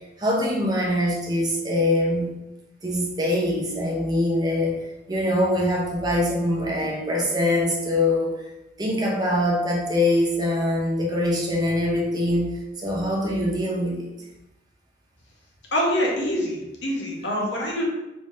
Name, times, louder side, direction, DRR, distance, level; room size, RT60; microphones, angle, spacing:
voice 1, 0.2-2.3 2.8-4.8 5.1-8.4 8.8-14.1, left 1 dB, 20° right, -3 dB, 0.7 m, -23 dB
voice 2, 15.7-17.8, equal, 85° left, -2 dB, 1.0 m, -25 dB
3.3 x 3.2 x 2.7 m, 0.96 s
head